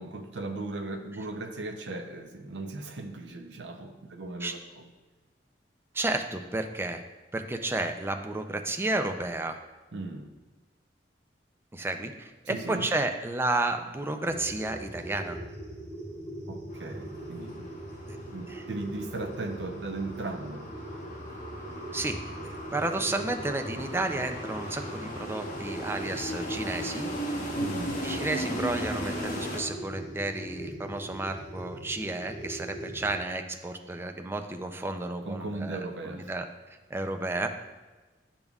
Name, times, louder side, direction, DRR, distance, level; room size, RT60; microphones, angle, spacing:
voice 1, 0.0-4.9 9.9-10.3 12.5-12.9 16.5-17.7 18.3-20.7 27.6-28.1 35.2-36.3, right 2 dB, 80° right, 5 dB, 0.7 m, -37 dB
voice 2, 5.9-7.0 7.3-9.6 11.7-15.4 18.1-18.2 18.5-18.6 21.9-27.1 28.0-36.5 36.9-37.5, right 2 dB, 15° right, 5 dB, 0.4 m, -32 dB
sound 1, 14.2-33.2, right 1 dB, 45° right, 2.3 m, -41 dB
sound 2, 16.7-29.6, equal, 50° left, 1.1 m, -37 dB
10.0 x 5.3 x 2.4 m, 1.2 s
head